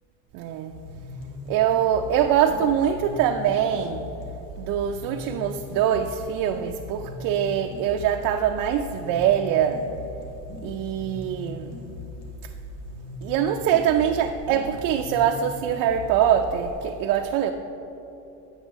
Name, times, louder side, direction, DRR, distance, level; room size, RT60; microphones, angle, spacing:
voice 1, 0.3-0.7 1.5-4.0 4.6-9.8 10.6-11.7 13.2-17.5, right 9 dB, 55° right, 4 dB, 0.5 m, -23 dB
sound 1, 0.7-16.7, left 3 dB, 65° left, 1.9 m, -39 dB
9.1 x 8.9 x 3.6 m, 3.0 s
supercardioid pair, 125°, 41 cm